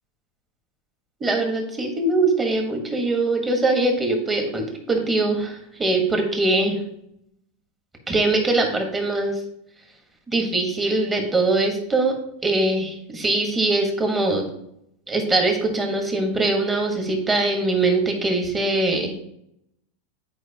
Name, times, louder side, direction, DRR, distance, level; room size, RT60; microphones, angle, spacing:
voice 1, 1.2-6.8 8.1-9.4 10.3-12.1 12.4-14.5 15.1-19.2, right 2 dB, 15° right, 2 dB, 1.4 m, -22 dB
9.3 x 4.6 x 2.9 m, 0.76 s
supercardioid pair, 140°, 0 cm